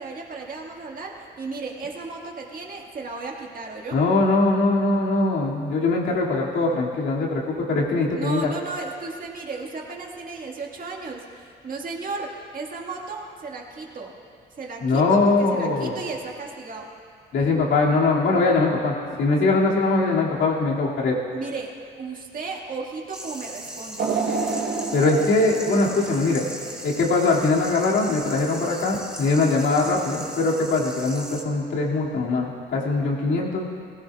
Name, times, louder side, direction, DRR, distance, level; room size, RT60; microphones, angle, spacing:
voice 1, 0.0-4.0 8.1-14.1 14.6-16.9 21.3-24.1, right 4 dB, 45° right, 0 dB, 1.8 m, -34 dB
voice 2, 3.9-8.5 14.8-15.9 17.3-21.2 24.9-26.4 26.8-33.7, left 3 dB, 75° left, -3 dB, 2.4 m, -21 dB
sound 1, 23.1-31.4, right 1 dB, 5° right, 1.4 m, -38 dB
sound 2, 24.0-27.1 27.6-27.7 28.7-28.8, right 4 dB, 65° right, 3.3 m, -29 dB
19.5 x 16.0 x 2.4 m, 2.3 s
cardioid pair, 90°, 20 cm